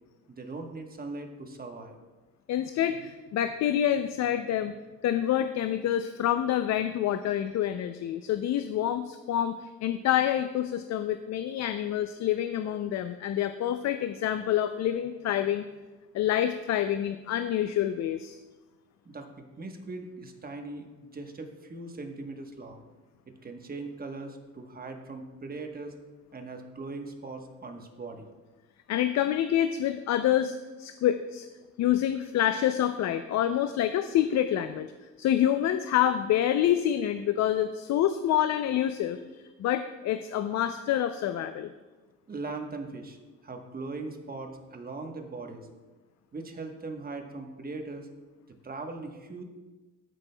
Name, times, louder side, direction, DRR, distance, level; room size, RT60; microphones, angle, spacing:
voice 1, 0.3-2.0 19.0-22.8 23.3-26.0 26.3-28.3 42.3-43.2 43.4-45.7 46.3-48.1 48.5-49.4, right 3 dB, 30° right, 4 dB, 1.1 m, -40 dB
voice 2, 2.5-4.7 5.0-15.6 16.1-18.4 28.9-31.5 31.8-34.9 35.2-41.7, left 11 dB, 65° left, 10 dB, 0.4 m, -27 dB
14.0 x 6.1 x 2.2 m, 1.2 s
cardioid pair, 90°, 30 cm